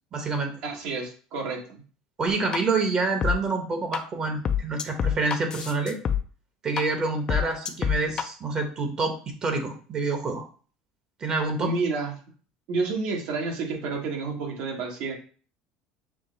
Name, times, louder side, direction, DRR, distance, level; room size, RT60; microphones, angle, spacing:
voice 1, 0.1-0.5 2.2-6.0 6.6-10.5 11.2-11.7, right 3 dB, 35° right, 5 dB, 1.0 m, -27 dB
voice 2, 0.6-1.8 11.6-12.1 12.7-15.1, right 3 dB, 65° right, 1 dB, 1.3 m, -29 dB
sound 1, 2.3-2.6 3.2-3.3 3.9-4.0 4.4-6.2 6.8-6.9 7.3-8.2, left 8 dB, 35° left, 0.4 m, -25 dB
5.9 x 2.0 x 3.9 m, 0.41 s
supercardioid pair, 105°, 2 cm